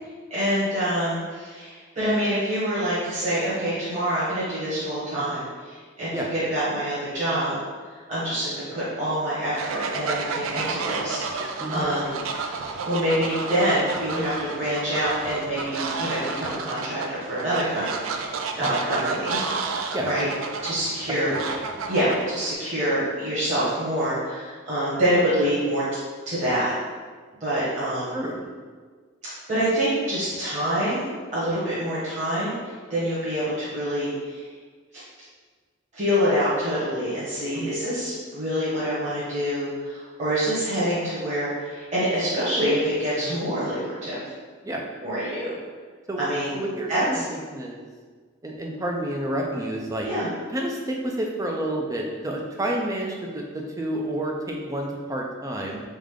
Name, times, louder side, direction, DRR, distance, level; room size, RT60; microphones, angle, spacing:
voice 1, 0.3-7.6 7.9-12.2 12.4-18.2 18.6-19.4 20.0-20.3 20.6-21.5 21.9-25.8 26.3-26.7 27.4-28.1 29.5-34.4 34.9-35.0 35.9-44.2 45.0-45.5 46.2-46.5 46.9-47.2 50.0-50.3, equal, 35° right, -11 dB, 1.1 m, -26 dB
Fowl, 9.5-22.5, right 4 dB, 75° right, 0.4 m, -31 dB
voice 2, 28.1-28.4 37.5-37.7 43.3-43.4 44.6-44.8 46.1-46.2 46.5-47.8 48.4-50.1 50.5-55.8, right 1 dB, 15° right, 0 dB, 0.4 m, -29 dB
3.7 x 3.6 x 3.6 m, 1.5 s
head